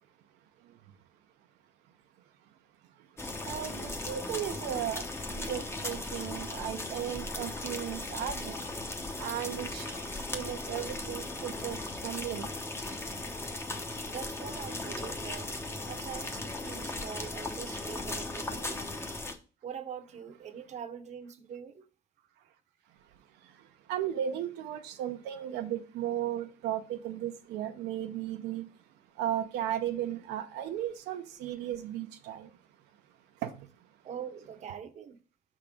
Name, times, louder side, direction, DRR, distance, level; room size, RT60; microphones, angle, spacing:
sound 1, 3.2-19.3, left 2 dB, 15° left, 0.8 m, -37 dB
voice 1, 3.4-5.1 5.3-8.6 9.2-11.8 12.0-12.5 23.9-28.6 29.2-32.5 33.4-33.5, right 11 dB, 85° right, 0.6 m, -35 dB
voice 2, 14.0-15.6 15.9-19.1 19.6-21.9 34.0-35.2, right 8 dB, 40° right, 0.8 m, -43 dB
5.7 x 3.7 x 5.1 m
cardioid pair, 110°, 17 cm